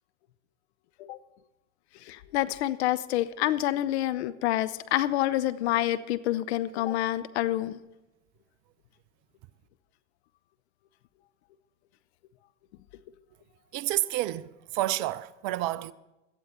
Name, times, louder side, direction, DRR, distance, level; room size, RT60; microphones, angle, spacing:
voice 1, 2.1-7.8, left 14 dB, 60° left, 0.7 m, -27 dB
voice 2, 13.7-15.9, right 15 dB, 45° right, 0.5 m, -30 dB
17.0 x 12.0 x 4.2 m
figure-of-eight pair, 75°, 38 cm